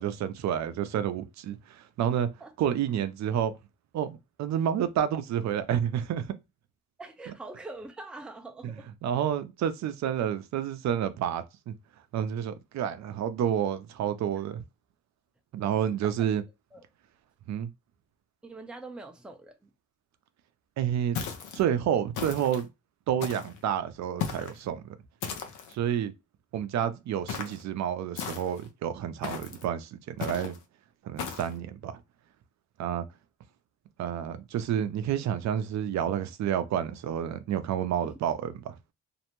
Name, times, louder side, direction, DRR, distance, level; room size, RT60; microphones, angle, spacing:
voice 1, 0.0-2.3 2.6-3.5 3.9-6.3 8.6-8.7 9.0-11.7 12.1-14.6 15.5-16.4 17.5-17.7 20.8-21.2 21.5-22.7 23.1-25.0 25.7-26.1 26.5-30.5 31.0-32.0 32.8-33.0 34.0-38.8, right 9 dB, 65° right, 0.5 m, -29 dB
voice 2, 7.0-8.9 16.0-16.2 16.7-16.8 18.4-19.7 38.0-38.2, right 2 dB, 5° right, 0.5 m, -44 dB
sound 1, 21.2-21.6 22.1-22.6 23.2-23.6 24.2-24.6 25.2-25.7 27.3-27.6 28.2-28.7 29.2-29.6 30.2-30.6 31.2-31.5, left 7 dB, 85° left, 0.7 m, -36 dB
2.6 x 2.1 x 2.9 m
cardioid pair, 90°, 30 cm